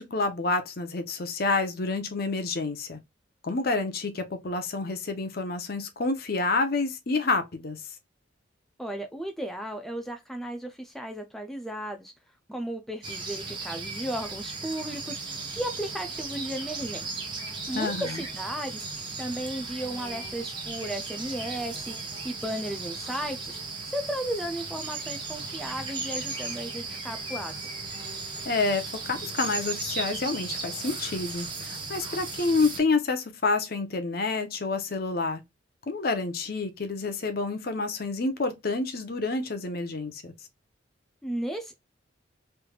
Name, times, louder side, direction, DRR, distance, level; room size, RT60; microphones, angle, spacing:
voice 1, 0.0-3.0 3.4-7.8 17.7-18.2 28.4-35.4 35.9-40.3, left 3 dB, 50° left, 0.7 m, -28 dB
voice 2, 8.8-12.1 12.5-15.2 15.6-17.1 17.7-18.9 19.2-21.9 22.2-23.6 23.9-27.8 41.2-41.7, right 1 dB, ahead, 0.4 m, -34 dB
sound 1, 13.0-32.8, right 3 dB, 25° right, 1.0 m, -36 dB
3.3 x 3.2 x 2.3 m
head